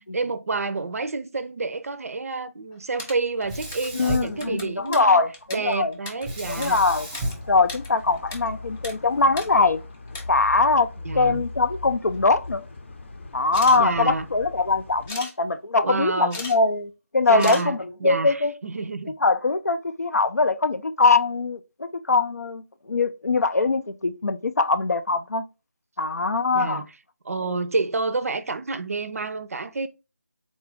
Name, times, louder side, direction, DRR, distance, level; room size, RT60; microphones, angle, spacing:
voice 1, 0.1-5.2 5.5-6.8 11.0-11.4 13.7-14.3 15.8-16.4 17.3-19.1 26.5-26.9 27.2-29.9, right 3 dB, 65° right, 0.4 m, -29 dB
sound 1, 2.7-4.0 4.3-7.3 7.6-8.4 8.6-8.9 9.3-9.5 9.9-10.2 11.2-11.3 11.7-12.3 13.4-13.8 15.1-15.3 16.1-16.6 16.8-16.9 17.4-17.7, left 2 dB, 10° left, 0.3 m, -36 dB
Sink (filling or washing), 3.4-5.1 6.2-8.5, right 1 dB, 10° right, 0.7 m, -34 dB
voice 2, 3.9-5.9 6.5-7.1 7.5-9.8 10.3-10.9 11.1-12.6 13.3-18.5 19.2-25.5 26.0-26.8 27.4-27.6, left 3 dB, 90° left, 0.4 m, -22 dB
sound 2, 6.3-15.1, left 3 dB, 50° left, 0.6 m, -39 dB
3.8 x 2.4 x 3.5 m
figure-of-eight pair, 165°, 9 cm